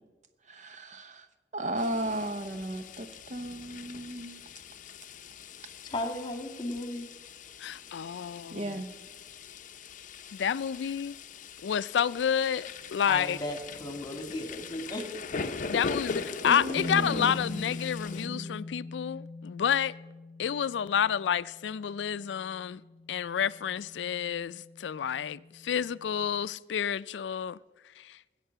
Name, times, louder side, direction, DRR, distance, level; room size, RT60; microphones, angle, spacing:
voice 1, 0.5-1.3 1.5-4.4 8.5-8.9 16.4-17.6 18.2-18.6, right 1 dB, 45° right, 0.8 m, -35 dB
sound 1, 1.8-18.3, left 4 dB, 50° left, 0.6 m, -41 dB
voice 2, 5.8-7.1 13.1-15.2, left 1 dB, 25° left, 1.8 m, -35 dB
voice 3, 7.6-8.7 10.3-11.2 11.6-13.4 15.6-19.9 20.4-22.8 23.1-27.6 28.0-28.2, left 8 dB, 90° left, 0.4 m, -29 dB
sound 2, 16.7-26.2, left 2 dB, 80° right, 2.4 m, -42 dB
20.5 x 8.1 x 5.7 m
head